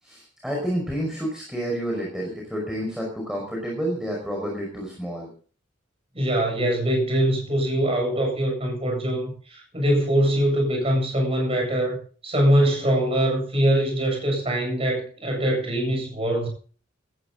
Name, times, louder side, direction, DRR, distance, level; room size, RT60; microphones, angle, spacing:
voice 1, 0.0-5.3, equal, 5° right, 5.4 m, -29 dB
voice 2, 6.1-12.0 12.2-16.5, right 1 dB, 30° right, 7.9 m, -23 dB
17.5 x 14.5 x 4.0 m
head